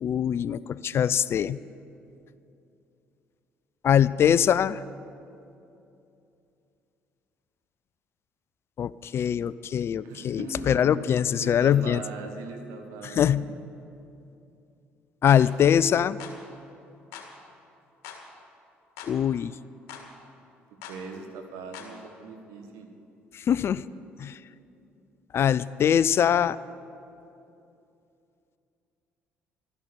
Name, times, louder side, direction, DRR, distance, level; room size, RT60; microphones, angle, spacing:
voice 1, 0.0-1.6 3.8-4.8 8.8-12.0 13.0-13.5 15.2-16.2 19.1-19.5 23.3-23.8 24.2-24.4 25.3-26.6, left 9 dB, 50° left, 18 dB, 0.4 m, -23 dB
voice 2, 10.0-10.8 11.4-13.6 20.9-23.0, right 4 dB, 70° right, 4 dB, 1.5 m, -40 dB
sound 1, 15.3-15.5 16.2-16.4 17.1-17.3 18.0-18.2 19.0-19.2 19.9-20.1 20.8-21.0 21.7-21.9, left 8 dB, 70° left, 1.6 m, -42 dB
12.5 x 10.5 x 6.8 m, 2.7 s
hypercardioid pair, 55°, 6 cm